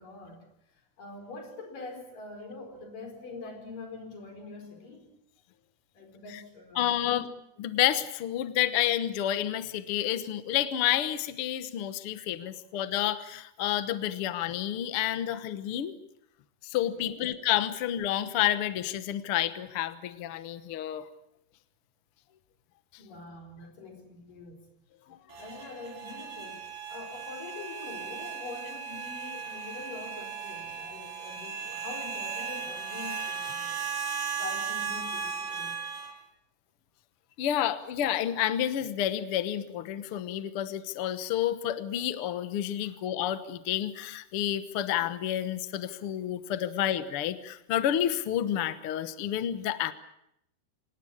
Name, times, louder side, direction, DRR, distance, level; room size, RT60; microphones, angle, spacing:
voice 1, 0.0-5.2 5.9-7.3 12.4-12.6 16.7-17.3 23.0-24.7 25.4-33.8 34.3-35.7 42.8-43.0, left 3 dB, 85° left, 4 dB, 6.2 m, -44 dB
voice 2, 6.8-7.2 7.6-15.9 16.6-21.1 25.1-25.2 37.4-49.9, left 11 dB, 60° left, 12 dB, 1.7 m, -29 dB
sound 1, 25.3-36.1, right 6 dB, 85° right, 5.9 m, -36 dB
26.0 x 18.5 x 8.7 m, 0.79 s
omnidirectional pair, 3.7 m